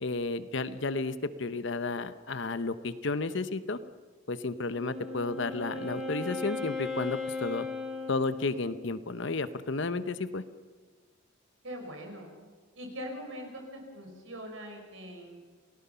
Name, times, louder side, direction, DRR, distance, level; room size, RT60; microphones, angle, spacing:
voice 1, 0.0-3.8 4.3-7.7 8.1-10.4, left 3 dB, 60° left, 12 dB, 0.9 m, -32 dB
Wind instrument woodwind instrument, 4.6-8.9, left 3 dB, ahead, 3.6 m, -37 dB
voice 2, 11.6-12.4 12.8-15.4, equal, 70° right, 3 dB, 5.7 m, -42 dB
28.0 x 18.0 x 5.7 m, 1.4 s
head